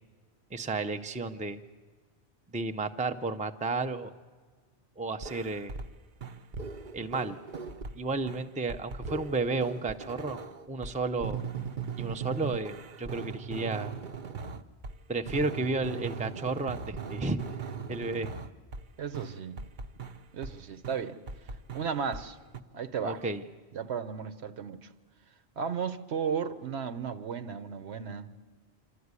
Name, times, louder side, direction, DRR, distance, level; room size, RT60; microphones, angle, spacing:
voice 1, 0.5-1.6 2.5-4.1 5.0-5.7 6.9-7.4 7.9-10.4 10.7-11.4 11.9-13.9 15.1-17.4 17.9-18.3 23.0-23.4, right 3 dB, 10° right, 0.5 m, -32 dB
sound 1, 5.2-5.9 6.2-8.0 8.3-15.0 15.3-18.9 19.1-20.6 20.8-22.3 22.5-22.6, right 5 dB, 50° right, 0.9 m, -39 dB
voice 2, 19.0-19.7 20.3-21.2 21.7-22.4 22.7-23.2 23.7-24.9 25.6-28.3, right 6 dB, 75° right, 1.2 m, -34 dB
26.0 x 13.5 x 9.6 m
omnidirectional pair, 1.1 m